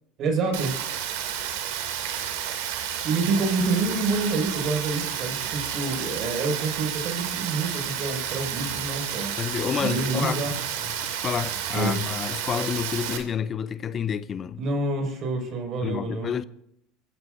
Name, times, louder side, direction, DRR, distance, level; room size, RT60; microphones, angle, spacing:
voice 1, 0.2-0.7 3.0-9.3 9.8-10.5 11.7-12.0 14.6-16.3, right 3 dB, 50° right, 5.5 m, -27 dB
Rain, 0.5-13.2, right 9 dB, 80° right, 2.6 m, -31 dB
voice 2, 9.4-10.4 11.1-14.6 15.8-16.4, left 7 dB, 35° left, 0.5 m, -29 dB
25.5 x 14.5 x 2.6 m
supercardioid pair, 100°, 0 cm